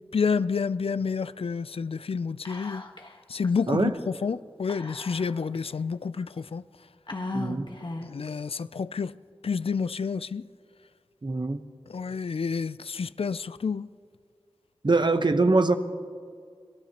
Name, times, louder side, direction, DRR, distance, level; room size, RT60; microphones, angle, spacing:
voice 1, 0.0-2.8 3.3-6.6 8.0-9.1 9.4-10.4 11.9-13.9, left 5 dB, 80° left, 0.4 m, -29 dB
Whispering, 2.4-3.2 3.4-3.5 4.7-5.5 6.2-6.3 7.1-8.3, left 2 dB, 55° left, 1.3 m, -36 dB
voice 2, 7.3-7.7 11.2-11.6 14.8-15.7, right 3 dB, 50° right, 1.0 m, -23 dB
26.0 x 19.0 x 2.9 m
wide cardioid pair, 45°, 10 cm